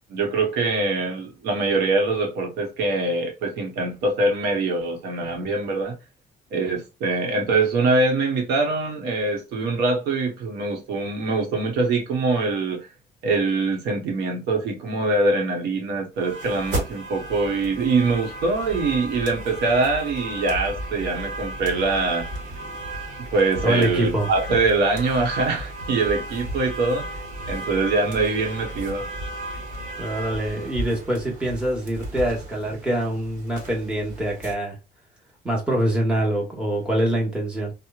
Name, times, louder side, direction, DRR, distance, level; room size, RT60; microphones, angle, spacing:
voice 1, 0.1-6.0 6.5-12.9 13.2-22.3 23.3-27.2 27.5-29.0, right 3 dB, 75° right, 0.9 m, -23 dB
sound 1, 16.2-34.5, right 1 dB, 50° right, 1.1 m, -34 dB
voice 2, 23.6-24.3 30.0-34.8 35.4-37.7, right 1 dB, 5° right, 1.1 m, -24 dB
2.9 x 2.0 x 2.3 m
cardioid pair, 110°, 17 cm